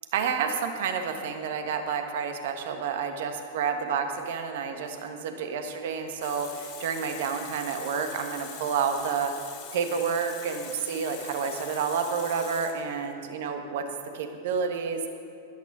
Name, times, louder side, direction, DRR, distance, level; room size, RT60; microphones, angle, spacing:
voice 1, 0.1-9.3 9.7-13.8 14.1-15.1, right 6 dB, 60° right, 6 dB, 1.4 m, -29 dB
Water tap faucet, 6.2-13.2, left 8 dB, 40° left, 2.4 m, -43 dB
13.0 x 11.5 x 6.2 m, 2.4 s
figure-of-eight pair, 95°, 0 cm